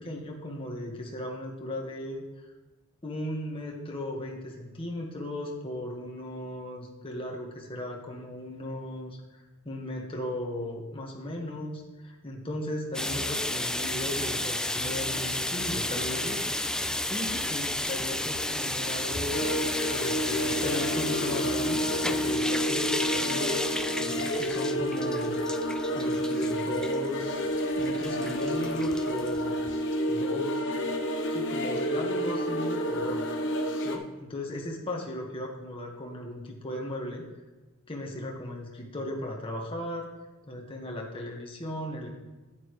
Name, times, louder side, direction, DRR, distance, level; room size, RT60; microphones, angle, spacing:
voice 1, 0.0-2.2 3.0-16.5 17.1-19.4 19.9-23.6 24.0-25.3 25.9-29.6 30.1-30.6 31.3-33.2 33.8-37.2 37.9-40.1 40.5-42.1, left 1 dB, 25° left, 0 dB, 1.6 m, -36 dB
sound 1, 12.9-29.8, left 1 dB, 5° left, 0.3 m, -32 dB
sound 2, 19.3-34.0, equal, 55° left, 1.0 m, -29 dB
10.5 x 9.0 x 3.3 m, 1.2 s
head